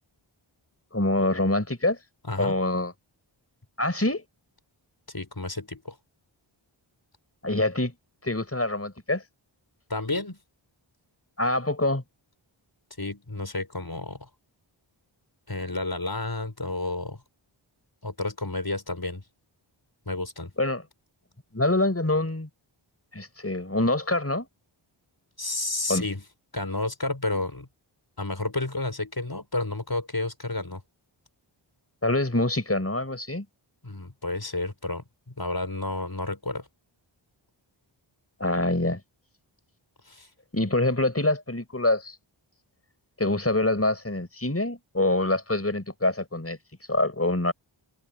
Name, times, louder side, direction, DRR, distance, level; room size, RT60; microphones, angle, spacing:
voice 1, 0.9-2.0 2.4-2.9 3.8-4.2 7.4-7.9 8.2-9.2 11.4-12.0 20.6-20.8 21.5-22.5 23.1-24.5 25.9-26.0 32.0-33.5 38.4-39.0 40.5-42.2 43.2-46.6 46.9-47.5, left 2 dB, 30° left, 5.6 m, -25 dB
voice 2, 5.1-6.0 9.9-10.4 13.0-14.3 15.5-17.2 18.0-19.2 20.1-20.5 25.4-26.2 26.5-27.7 28.2-30.8 33.8-36.7 40.1-40.3, left 2 dB, 45° left, 6.4 m, -31 dB
wide cardioid pair, 40°, 50 cm